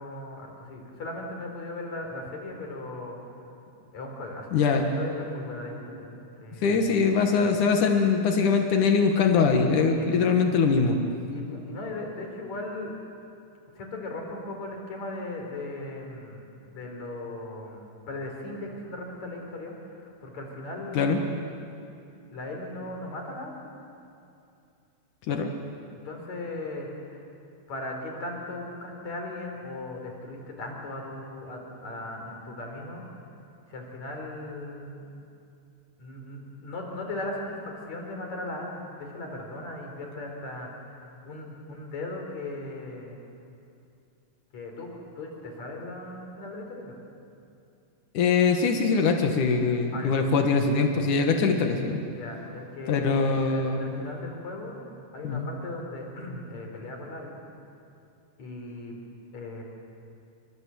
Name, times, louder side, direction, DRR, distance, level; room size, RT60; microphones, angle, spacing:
voice 1, 0.0-3.2 3.9-6.9 10.0-10.1 11.3-12.9 13.8-21.4 22.3-23.6 26.0-27.2 27.7-33.1 33.7-35.1 36.0-43.3 44.5-44.9 45.2-47.0 49.9-50.2 52.1-54.9 55.1-57.4 58.4-59.0 59.3-59.6, left 2 dB, 65° left, 1 dB, 5.5 m, -38 dB
voice 2, 4.5-4.9 6.6-11.0 20.9-21.2 25.3-25.5 48.1-52.0 52.9-54.0 55.2-55.5, left 5 dB, 90° left, 4 dB, 3.2 m, -22 dB
28.5 x 25.5 x 7.9 m, 2.6 s
omnidirectional pair, 3.5 m